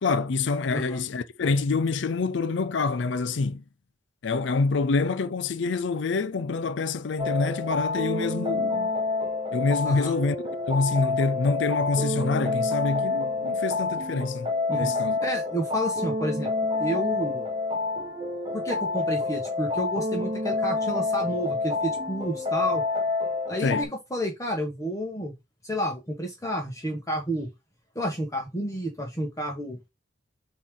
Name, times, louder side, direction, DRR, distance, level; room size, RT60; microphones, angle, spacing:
voice 1, 0.0-3.6 4.2-8.9 9.5-10.4 10.7-15.2 23.6-23.9, left 4 dB, 70° left, 0.5 m, -26 dB
voice 2, 0.7-1.0 9.8-10.1 14.7-14.9 15.2-16.5 16.8-17.5 18.5-22.8 23.5-25.3 25.6-27.5 27.9-29.8, equal, 15° left, 1.4 m, -30 dB
sound 1, 7.2-23.8, left 3 dB, 30° right, 1.3 m, -28 dB
8.2 x 3.2 x 3.8 m
head